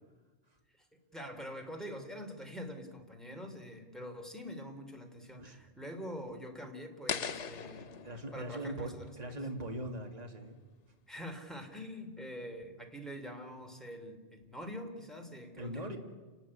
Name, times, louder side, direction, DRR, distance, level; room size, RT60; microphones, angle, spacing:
voice 1, 1.1-7.9 8.3-9.1 11.1-16.0, equal, ahead, 3 dB, 3.2 m, -45 dB
sound 1, 7.1-10.1, left 7 dB, 85° left, 1.3 m, -41 dB
voice 2, 7.7-10.6 15.6-16.0, right 1 dB, 35° right, 3 dB, 2.3 m, -41 dB
30.0 x 12.0 x 9.8 m, 1.3 s
omnidirectional pair, 1.2 m